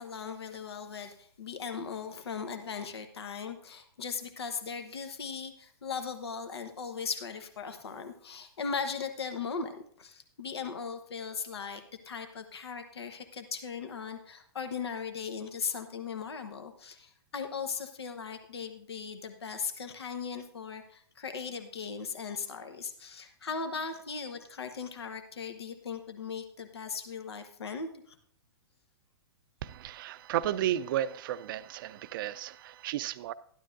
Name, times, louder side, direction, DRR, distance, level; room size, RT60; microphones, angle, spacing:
voice 1, 0.0-28.1, left 5 dB, 80° left, 7 dB, 1.0 m, -38 dB
voice 2, 29.6-33.3, right 12 dB, 55° right, 14 dB, 0.4 m, -33 dB
12.5 x 11.5 x 2.5 m, 0.63 s
hypercardioid pair, 110°, 13 cm